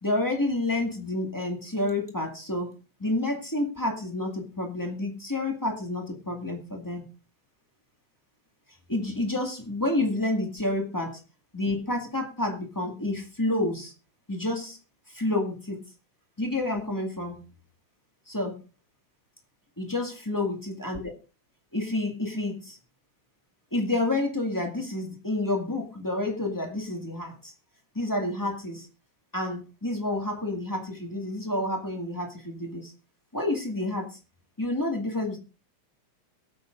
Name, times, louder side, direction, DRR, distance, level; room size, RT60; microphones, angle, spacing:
voice 1, 0.0-2.7 3.0-7.1 8.9-11.2 11.5-13.9 14.3-14.8 15.1-15.8 16.4-17.4 18.3-18.5 19.8-21.1 21.7-22.8 23.7-27.5 27.9-28.9 29.3-32.9 33.3-34.2 34.6-35.4, left 2 dB, 10° left, 1 dB, 0.9 m, -29 dB
22.5 x 8.7 x 2.6 m, 0.33 s
omnidirectional pair, 4.0 m